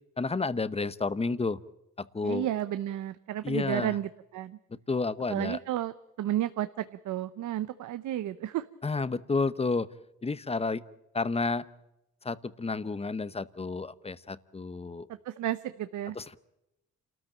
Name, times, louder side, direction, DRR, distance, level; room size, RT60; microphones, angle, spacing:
voice 1, 0.2-1.6 2.0-2.5 3.4-3.9 4.9-5.6 8.8-9.9 10.2-10.8 11.1-11.7 12.2-15.1 16.1-16.4, left 3 dB, 20° left, 16 dB, 0.9 m, -31 dB
voice 2, 2.2-4.6 5.3-8.6 15.1-16.2, right 12 dB, 75° right, 13 dB, 0.8 m, -32 dB
28.5 x 13.5 x 8.9 m, 0.92 s
cardioid pair, 90°, 30 cm